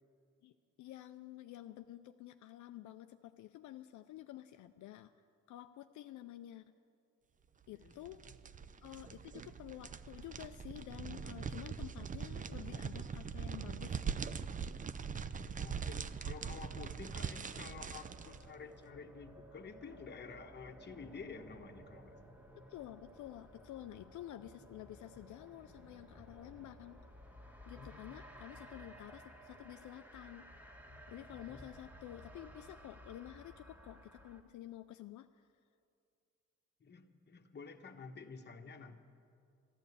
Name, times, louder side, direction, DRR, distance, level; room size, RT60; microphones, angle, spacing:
voice 1, 0.8-5.1 5.5-6.7 7.7-8.3 8.8-14.3 22.7-27.0 27.7-30.5 31.1-35.5, left 13 dB, 75° left, 8 dB, 0.5 m, -50 dB
voice 2, 7.7-8.0 15.2-22.2 27.8-28.0 28.3-28.4 31.5-31.7 36.8-39.0, left 5 dB, 35° left, 5 dB, 1.1 m, -51 dB
sound 1, 7.8-18.5, right 6 dB, 25° right, 0.5 m, -42 dB
sound 2, 15.4-34.4, equal, 5° right, 1.7 m, -56 dB
12.0 x 12.0 x 8.4 m, 2.4 s
cardioid pair, 90°, 30 cm